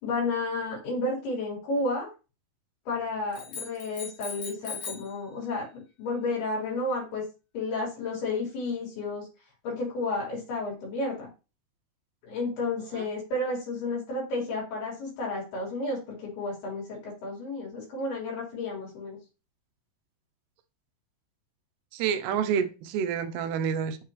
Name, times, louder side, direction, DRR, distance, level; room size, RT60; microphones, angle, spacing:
voice 1, 0.0-2.1 2.9-7.2 7.5-9.3 9.6-11.3 12.2-19.2, left 2 dB, 75° left, -4 dB, 5.6 m, -32 dB
sound 1, 3.3-5.2, left 5 dB, 55° left, 3.1 m, -39 dB
voice 2, 21.9-24.0, right 7 dB, 85° right, 9 dB, 2.8 m, -28 dB
9.2 x 3.8 x 3.0 m, 0.30 s
omnidirectional pair, 4.7 m